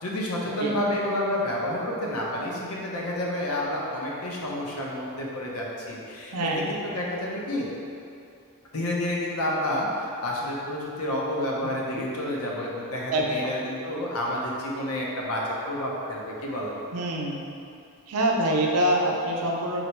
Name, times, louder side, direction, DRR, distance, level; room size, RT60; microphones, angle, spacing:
voice 1, 0.0-7.7 8.7-16.7, left 1 dB, 75° left, -3 dB, 0.7 m, -29 dB
voice 2, 6.3-6.7 13.1-13.5 16.9-17.5 18.1-19.8, right 1 dB, 80° right, -1 dB, 0.5 m, -25 dB
4.0 x 2.1 x 4.4 m, 2.5 s
head